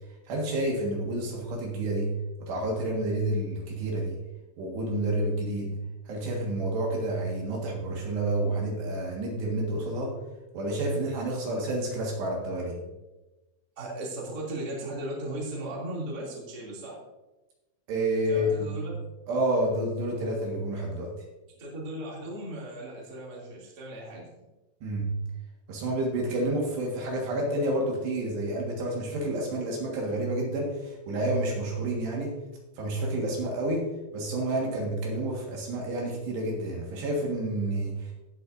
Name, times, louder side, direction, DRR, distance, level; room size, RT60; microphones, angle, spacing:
voice 1, 0.3-2.1 2.4-4.2 4.6-5.7 6.1-10.2 10.5-12.8 17.9-18.7 19.3-21.1 24.8-25.1 25.7-32.4 32.8-38.1, right 1 dB, 70° right, -1 dB, 3.6 m, -29 dB
voice 2, 13.8-17.0 18.3-18.9 21.5-24.3, right 1 dB, 25° right, -4 dB, 2.4 m, -37 dB
17.0 x 7.8 x 2.6 m, 1.0 s
omnidirectional pair, 5.4 m